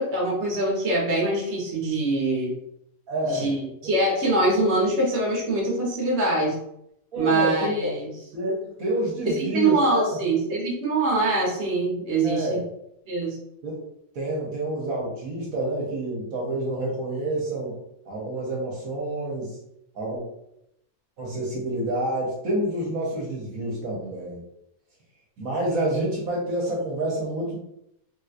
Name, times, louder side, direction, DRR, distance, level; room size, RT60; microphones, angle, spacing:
voice 1, 0.0-2.5 3.2-6.6 7.2-8.1 9.3-12.6 13.1-13.4, right 2 dB, 50° right, -3 dB, 1.3 m, -24 dB
voice 2, 3.1-3.5 7.1-8.0 8.3-10.1 12.2-12.6 13.6-13.8 14.1-17.8 18.0-19.6 19.9-20.2 21.2-24.4 25.4-27.6, right 1 dB, 75° right, -3 dB, 1.3 m, -28 dB
3.3 x 3.0 x 2.4 m, 0.78 s
omnidirectional pair, 1.5 m